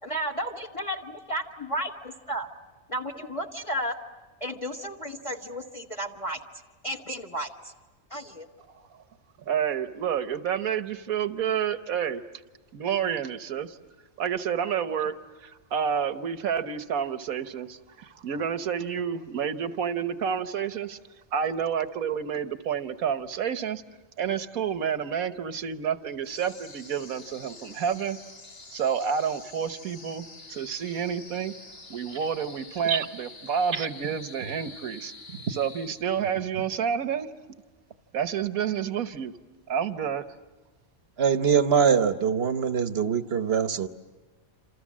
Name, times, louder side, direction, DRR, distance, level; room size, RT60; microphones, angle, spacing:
voice 1, 0.0-1.0 1.3-2.5 2.9-3.9 4.4-6.4 6.8-7.7 8.1-8.5, equal, 25° left, 4 dB, 1.5 m, -33 dB
voice 2, 9.5-12.2 12.7-13.8 14.2-15.1 15.4-21.0 21.3-23.8 24.2-28.2 28.7-31.5 31.9-35.1 35.5-37.3 38.1-39.3 39.7-40.2, right 7 dB, 80° right, 11 dB, 1.5 m, -29 dB
sound 1, 26.2-36.4, left 3 dB, 65° left, 2.6 m, -47 dB
voice 3, 41.2-43.9, right 7 dB, 50° right, 10 dB, 1.2 m, -23 dB
28.0 x 27.5 x 7.5 m, 1.2 s
omnidirectional pair, 1.5 m